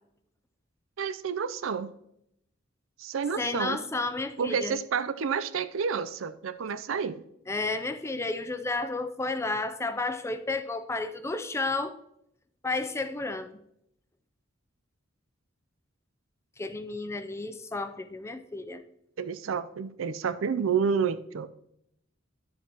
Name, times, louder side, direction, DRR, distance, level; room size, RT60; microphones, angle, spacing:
voice 1, 1.0-1.9 3.0-3.8 4.4-7.2 19.2-21.5, right 6 dB, 70° right, 13 dB, 0.5 m, -29 dB
voice 2, 3.4-4.8 7.5-12.0 12.6-13.6 16.6-18.8, left 3 dB, 15° left, 10 dB, 0.4 m, -32 dB
11.0 x 7.3 x 2.9 m, 0.77 s
head